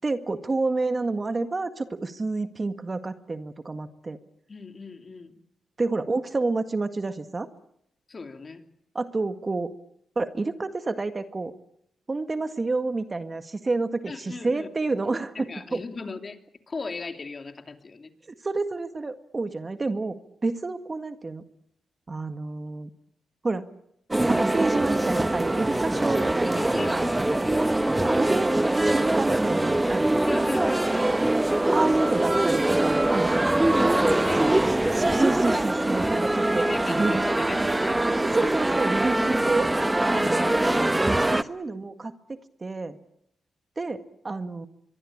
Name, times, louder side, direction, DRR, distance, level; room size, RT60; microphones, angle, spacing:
voice 1, 0.0-4.2 5.8-7.5 9.0-9.7 10.2-11.5 12.1-15.8 18.4-21.4 22.1-22.9 23.4-23.6 24.3-27.0 28.1-30.2 31.7-33.5 34.9-37.3 38.1-39.8 41.3-43.0 43.8-44.7, right 3 dB, 30° right, 9 dB, 1.8 m, -29 dB
voice 2, 4.5-5.4 8.1-8.6 14.1-14.7 15.3-16.4 16.7-18.1 26.5-27.6 30.3-31.1 33.8-34.7 36.6-38.0 40.1-40.9, left 4 dB, 40° left, 6 dB, 2.9 m, -37 dB
sound 1, 24.1-41.4, right 1 dB, 15° right, 1.1 m, -23 dB
25.0 x 23.0 x 8.7 m, 0.74 s
cardioid pair, 90°, 0 cm